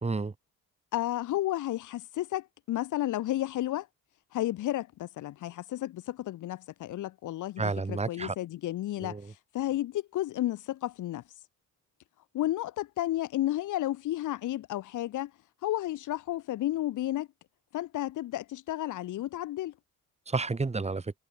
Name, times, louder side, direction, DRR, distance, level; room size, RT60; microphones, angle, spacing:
voice 1, 0.0-0.3 7.6-8.3 9.0-9.3 20.3-21.1, right 3 dB, 20° right, 2.3 m, -31 dB
voice 2, 0.9-3.9 4.3-9.2 9.5-11.2 12.3-15.3 15.6-17.3 17.7-19.7, left 14 dB, 80° left, 2.8 m, -32 dB
cardioid pair, 90°, 30 cm